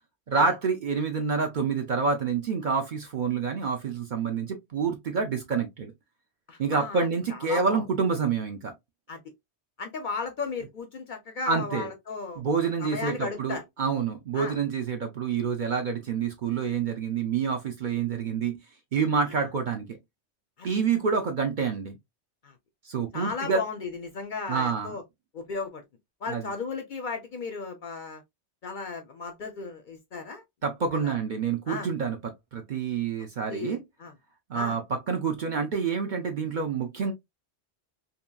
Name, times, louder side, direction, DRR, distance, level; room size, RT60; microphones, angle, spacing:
voice 1, 0.3-5.9 6.6-8.7 11.5-11.9 12.4-18.6 18.9-20.0 20.6-22.0 22.8-23.6 24.5-24.9 26.3-26.5 30.6-32.2 32.5-33.8 34.5-37.1, right 5 dB, 55° right, 0.6 m, -27 dB
voice 2, 6.5-7.8 9.1-9.2 9.8-13.6 14.3-14.6 19.2-19.5 20.6-20.7 22.4-22.5 23.1-25.0 25.3-25.8 26.2-28.2 28.6-30.4 30.9-31.1 31.7-31.9 33.5-34.1 34.5-34.8, left 4 dB, 55° left, 0.6 m, -35 dB
2.8 x 2.7 x 2.2 m
omnidirectional pair, 1.2 m